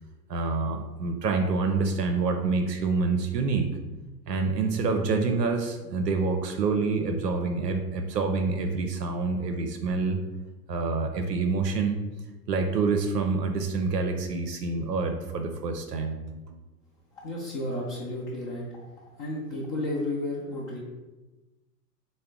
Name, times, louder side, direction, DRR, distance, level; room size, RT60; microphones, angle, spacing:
voice 1, 0.3-3.7 4.3-10.2 10.7-12.0 12.5-16.6, right 4 dB, 85° right, 4 dB, 0.5 m, -27 dB
voice 2, 17.1-18.9 19.2-20.8, left 1 dB, 25° left, -5 dB, 0.5 m, -32 dB
3.6 x 2.1 x 3.5 m, 1.1 s
figure-of-eight pair, 100°, 48 cm